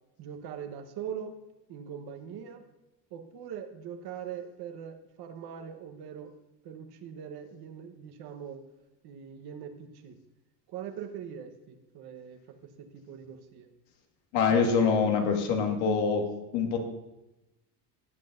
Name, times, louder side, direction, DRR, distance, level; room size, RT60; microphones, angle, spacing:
voice 1, 0.2-1.4 1.7-2.6 3.1-6.3 6.6-8.6 9.0-10.2 10.7-13.7, right 8 dB, 50° right, 7 dB, 1.2 m, -42 dB
voice 2, 14.3-16.3 16.5-16.8, left 5 dB, 80° left, 3 dB, 1.9 m, -25 dB
17.0 x 7.5 x 2.6 m, 0.99 s
supercardioid pair, 120°, 49 cm